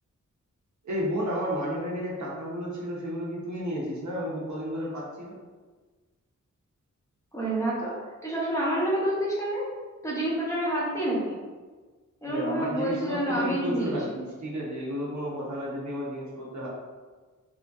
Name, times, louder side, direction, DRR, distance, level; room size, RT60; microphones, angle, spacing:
voice 1, 0.8-5.4 12.3-16.7, equal, 65° right, -5 dB, 0.8 m, -32 dB
voice 2, 7.3-7.9 8.2-9.6 10.0-11.4 12.2-13.9, right 1 dB, 10° left, -7 dB, 0.8 m, -28 dB
2.9 x 2.6 x 2.4 m, 1.4 s
wide cardioid pair, 85°, 31 cm